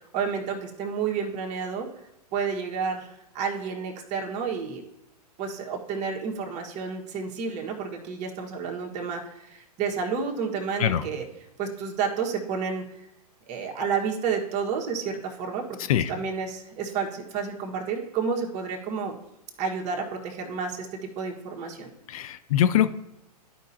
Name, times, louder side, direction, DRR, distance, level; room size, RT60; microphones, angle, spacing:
voice 1, 0.1-1.9 2.3-4.8 5.4-11.3 11.6-13.0 13.5-15.7 16.1-19.2 19.6-21.9, right 6 dB, 35° right, 0 dB, 1.5 m, -30 dB
voice 2, 22.1-22.9, left 10 dB, 60° left, 12 dB, 0.5 m, -22 dB
13.0 x 5.3 x 2.8 m, 0.87 s
hypercardioid pair, 110°, 20 cm